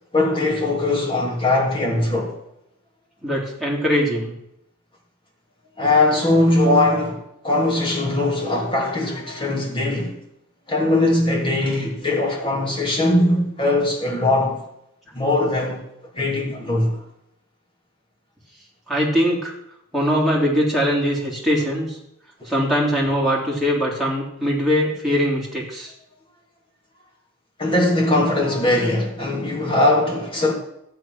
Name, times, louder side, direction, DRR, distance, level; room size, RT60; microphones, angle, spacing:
voice 1, 0.1-2.4 5.8-10.2 10.7-14.6 15.1-15.8 16.1-17.0 27.6-30.5, left 2 dB, 25° left, 3.2 m, -20 dB
voice 2, 3.2-4.3 18.9-19.5 19.9-22.0 22.5-25.9, equal, ahead, 3.5 m, -21 dB
12.5 x 9.0 x 6.2 m
head